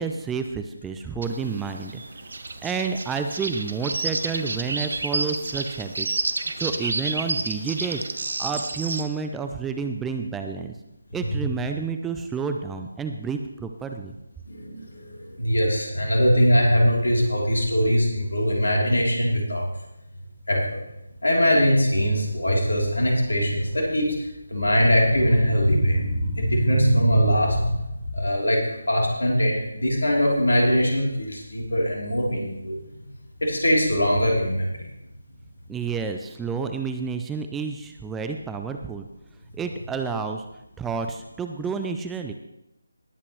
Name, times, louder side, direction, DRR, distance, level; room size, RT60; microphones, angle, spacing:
voice 1, 0.0-2.0 2.6-8.0 8.4-10.7 11.1-14.1 35.7-39.1 39.5-40.4 40.8-42.3, right 5 dB, 5° right, 5 dB, 0.5 m, -30 dB
sound 1, 1.2-9.0, right 3 dB, 55° right, 1.1 m, -30 dB
voice 2, 14.5-19.7 20.5-20.8 21.2-27.8 28.1-32.8 33.4-34.9, equal, 70° left, -2 dB, 3.6 m, -21 dB
19.0 x 8.4 x 3.3 m, 0.88 s
figure-of-eight pair, 155°, 0 cm